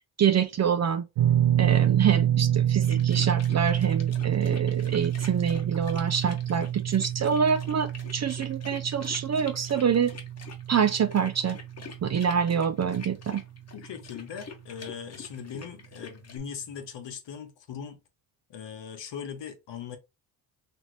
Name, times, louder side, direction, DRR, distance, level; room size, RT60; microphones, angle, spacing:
voice 1, 0.2-1.0 1.6-10.1 10.7-11.6 12.0-13.4, right 7 dB, 35° right, 0.5 m, -26 dB
sound 1, 1.2-13.4 13.7-13.9 15.6-15.7, right 11 dB, 80° right, 0.8 m, -28 dB
sound 2, 2.8-16.4, left 5 dB, 30° left, 1.0 m, -46 dB
voice 2, 13.7-18.0 18.5-20.0, left 7 dB, 60° left, 1.0 m, -39 dB
2.9 x 2.6 x 3.1 m
hypercardioid pair, 50°, 50 cm